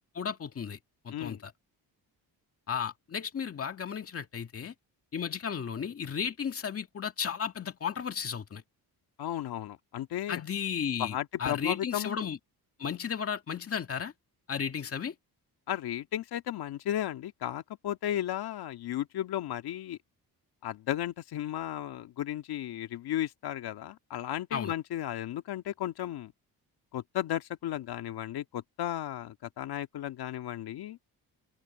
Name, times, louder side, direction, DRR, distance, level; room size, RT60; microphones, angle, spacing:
voice 1, 0.1-0.8 1.0-1.5 2.7-4.7 5.1-8.6 10.3-12.4 12.8-14.1 14.5-15.1 24.5-24.7, left 7 dB, 35° left, 2.2 m, -34 dB
voice 2, 9.2-10.4 11.0-12.3 15.7-20.0 20.6-26.3 26.9-31.0, left 12 dB, 75° left, 1.9 m, -34 dB
cardioid pair, 145°, 38 cm